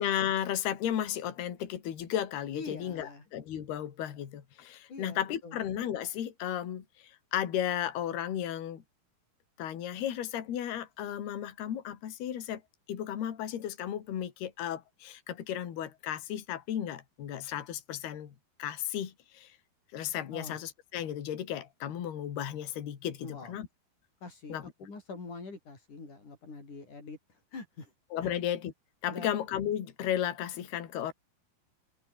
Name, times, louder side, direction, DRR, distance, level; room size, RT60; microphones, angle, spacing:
voice 1, 0.0-8.8 9.6-12.6 12.9-18.3 18.6-19.5 19.9-23.7 24.5-24.6 28.1-28.7 29.0-31.1, left 10 dB, 65° left, 4.5 m, -34 dB
voice 2, 2.5-3.3 4.9-5.6 20.3-20.6 23.2-23.6 24.2-27.2 27.5-27.9 28.2-28.3 29.1-29.3, left 3 dB, 45° left, 8.8 m, -44 dB
omnidirectional pair, 5.1 m